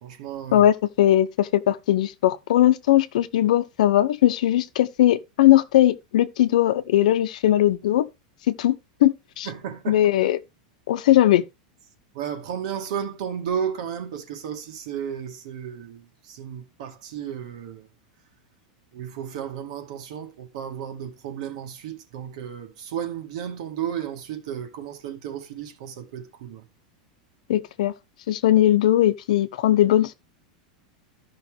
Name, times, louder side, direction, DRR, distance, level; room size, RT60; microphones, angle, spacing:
voice 1, 0.0-0.7 9.4-10.3 12.1-17.9 18.9-26.6, right 8 dB, 60° right, 2.1 m, -33 dB
voice 2, 0.5-8.1 8.5-9.5 9.9-10.4 10.9-11.4 27.5-27.9 28.3-30.1, left 13 dB, 70° left, 1.0 m, -19 dB
13.5 x 5.8 x 3.5 m
supercardioid pair, 175°, 4 cm